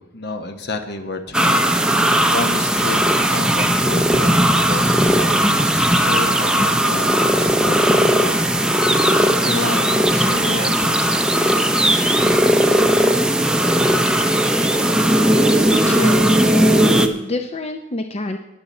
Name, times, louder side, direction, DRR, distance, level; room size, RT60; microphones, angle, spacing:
voice 1, 0.0-3.0 3.3-8.5 9.4-11.7, left 2 dB, 55° left, 7 dB, 1.1 m, -30 dB
sound 1, 1.3-17.1, right 1 dB, 5° right, 0.7 m, -17 dB
voice 2, 15.8-16.6 17.1-18.4, left 2 dB, 35° left, 6 dB, 0.6 m, -27 dB
19.5 x 7.0 x 4.3 m, 1.0 s
head